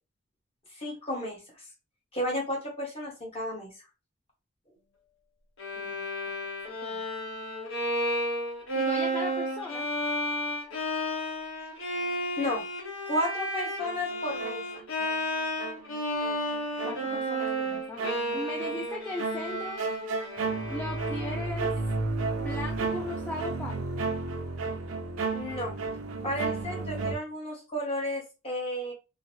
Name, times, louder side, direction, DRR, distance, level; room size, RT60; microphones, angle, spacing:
voice 1, 0.8-1.4 2.1-3.7 12.4-12.6 13.1-14.6 25.3-25.8 26.2-28.9, left 1 dB, 30° left, 1.2 m, -32 dB
Bowed string instrument, 5.6-21.7, equal, 70° left, 1.1 m, -32 dB
voice 2, 6.7-7.0 8.7-9.9 16.8-19.8 20.7-21.7 22.4-23.9, left 1 dB, 10° left, 0.4 m, -38 dB
sound 1, 13.8-15.2 15.6-27.2, right 3 dB, 90° right, 0.6 m, -33 dB
2.7 x 2.6 x 2.8 m
head